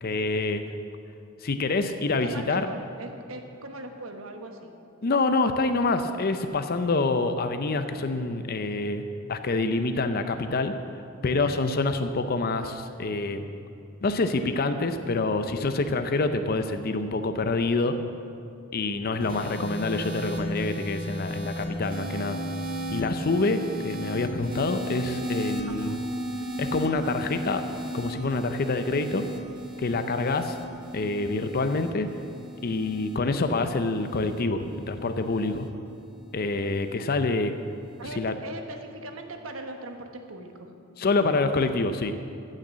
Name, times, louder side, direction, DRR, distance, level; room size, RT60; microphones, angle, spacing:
voice 1, 0.0-0.6 1.4-2.7 5.0-9.0 9.3-10.7 11.2-13.4 14.0-18.0 18.7-22.4 22.9-26.0 26.6-29.2 29.8-30.6 30.9-32.1 32.6-35.7 36.3-37.5 38.2-38.3 41.0-42.1, left 3 dB, 45° left, 8 dB, 0.6 m, -26 dB
voice 2, 2.2-4.7 25.7-26.0 38.0-40.7, right 2 dB, 75° right, 5 dB, 1.2 m, -40 dB
sound 1, 19.2-35.7 36.6-36.9, equal, 45° right, 1.6 m, -35 dB
15.0 x 6.6 x 7.4 m, 2.6 s
head